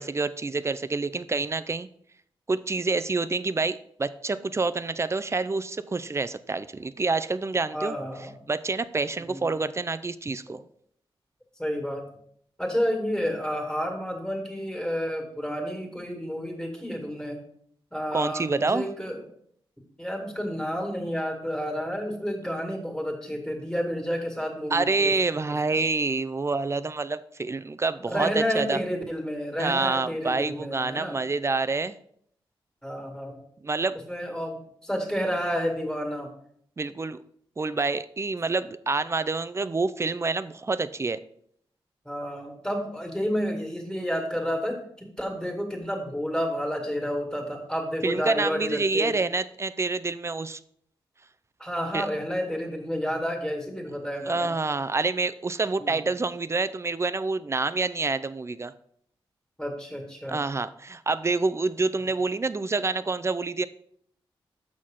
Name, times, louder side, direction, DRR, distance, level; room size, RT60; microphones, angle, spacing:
voice 1, 0.0-1.9 2.5-8.0 8.5-10.6 18.1-18.9 24.7-28.3 28.5-28.8 29.6-32.0 33.6-34.0 36.8-37.2 37.6-41.2 48.0-50.6 51.9-52.1 54.3-58.7 60.3-63.7, right 3 dB, 30° right, 13 dB, 0.4 m, -27 dB
voice 2, 7.7-8.3 9.2-9.4 11.6-12.0 12.6-17.4 17.9-19.2 20.0-25.1 25.5-25.6 28.1-31.2 32.8-33.4 34.1-34.6 34.8-36.3 42.1-49.1 51.6-54.5 55.8-56.0 59.6-60.4, equal, 5° left, 2 dB, 2.1 m, -30 dB
6.4 x 6.0 x 3.8 m, 0.67 s
cardioid pair, 60°, 10 cm